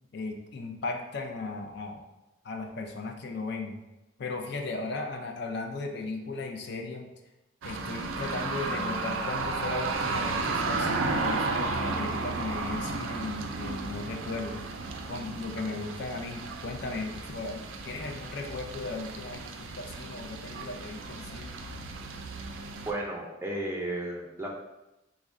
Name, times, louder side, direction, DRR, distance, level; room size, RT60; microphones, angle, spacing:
voice 1, 0.1-2.1 2.4-3.8 4.2-7.1 7.6-14.7 15.1-21.5, left 3 dB, 55° left, 3 dB, 0.4 m, -36 dB
sound 1, 7.6-22.9, right 3 dB, 80° right, 0.4 m, -33 dB
voice 2, 22.9-24.5, right 1 dB, 10° right, -1 dB, 0.4 m, -33 dB
3.5 x 2.1 x 3.6 m, 0.96 s
head